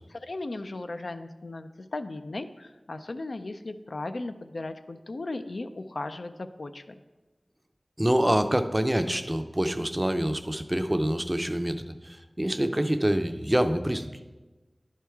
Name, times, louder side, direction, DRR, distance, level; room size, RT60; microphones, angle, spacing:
voice 1, 0.2-6.8, left 2 dB, 80° left, 8 dB, 0.4 m, -36 dB
voice 2, 8.0-14.1, right 1 dB, 20° right, 8 dB, 0.5 m, -26 dB
11.0 x 4.5 x 3.5 m, 1.2 s
wide cardioid pair, 45°, 0 cm